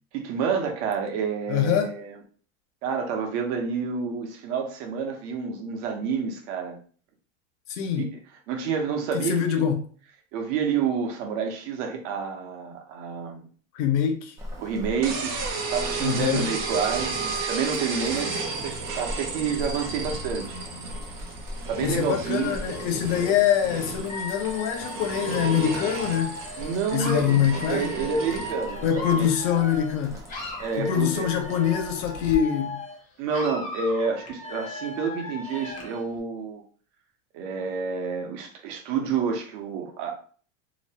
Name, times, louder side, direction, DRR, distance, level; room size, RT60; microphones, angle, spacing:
voice 1, 0.1-2.2 2.8-6.8 7.9-8.1 8.5-9.6 10.3-13.4 14.6-17.2 17.5-20.6 21.7-22.6 23.2-23.3 26.6-29.3 30.4-31.2 33.2-36.6 37.3-40.1, right 6 dB, 65° right, 0.9 m, -29 dB
voice 2, 1.5-1.9 7.7-8.1 9.1-9.8 13.7-14.3 16.0-16.5 21.8-26.4 26.9-27.9 28.8-30.2 30.8-32.8, left 9 dB, 70° left, 0.7 m, -24 dB
Boiling, 14.4-32.3, left 1 dB, 10° right, 0.3 m, -42 dB
sound 1, 15.0-28.5, right 4 dB, 45° right, 0.8 m, -33 dB
Dog / Alarm, 24.1-30.0 30.3-33.0 33.3-36.0, left 2 dB, 20° left, 0.7 m, -37 dB
2.9 x 2.1 x 2.7 m
supercardioid pair, 130°, 39 cm